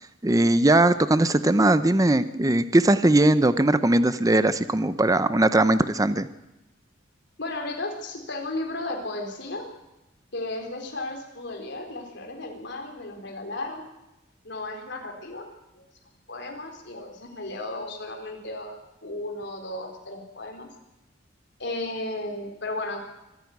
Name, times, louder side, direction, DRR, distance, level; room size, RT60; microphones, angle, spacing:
voice 1, 0.2-6.3, right 1 dB, 20° right, 13 dB, 0.7 m, -20 dB
voice 2, 7.4-9.7 10.3-13.8 14.4-15.5 15.7-15.8 16.3-20.7 21.6-23.0, left 2 dB, 65° left, 2 dB, 4.0 m, -34 dB
25.5 x 11.0 x 9.4 m, 0.97 s
head